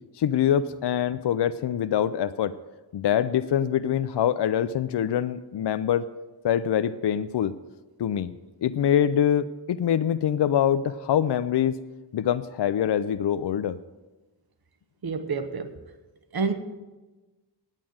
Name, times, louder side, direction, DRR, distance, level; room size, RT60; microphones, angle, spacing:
voice 1, 0.2-2.5 2.9-6.0 6.4-7.5 8.0-8.3 8.6-11.8 12.1-13.8, left 9 dB, 70° left, 12 dB, 0.5 m, -24 dB
voice 2, 15.0-15.7 16.3-16.5, right 4 dB, 55° right, 9 dB, 1.0 m, -28 dB
9.1 x 8.6 x 7.7 m, 1.2 s
wide cardioid pair, 70°, 43 cm